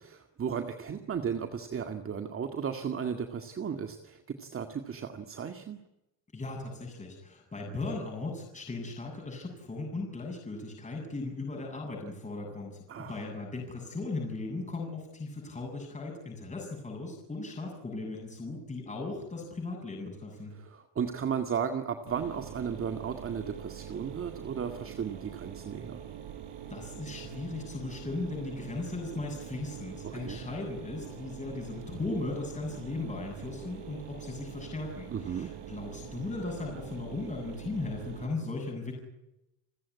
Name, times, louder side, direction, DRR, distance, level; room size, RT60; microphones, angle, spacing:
voice 1, 0.0-5.8 12.9-13.3 20.5-26.0 30.0-30.4 35.1-35.5, right 7 dB, 30° right, 6 dB, 2.0 m, -35 dB
voice 2, 6.3-20.5 26.7-39.0, left 3 dB, 20° left, 0 dB, 7.7 m, -37 dB
Mechanisms, 22.1-38.3, right 9 dB, 90° right, 5.7 m, -44 dB
30.0 x 16.0 x 9.6 m, 0.89 s
cardioid pair, 145°, 41 cm